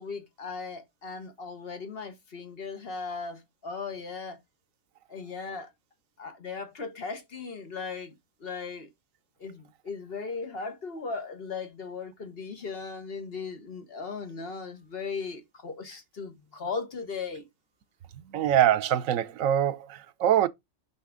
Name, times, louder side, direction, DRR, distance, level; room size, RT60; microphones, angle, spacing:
voice 1, 0.0-4.4 5.1-5.7 6.2-8.9 9.4-17.5, left 4 dB, 50° left, 1.4 m, -37 dB
voice 2, 18.3-20.5, right 10 dB, 85° right, 1.0 m, -24 dB
6.8 x 5.6 x 3.7 m
omnidirectional pair, 1.4 m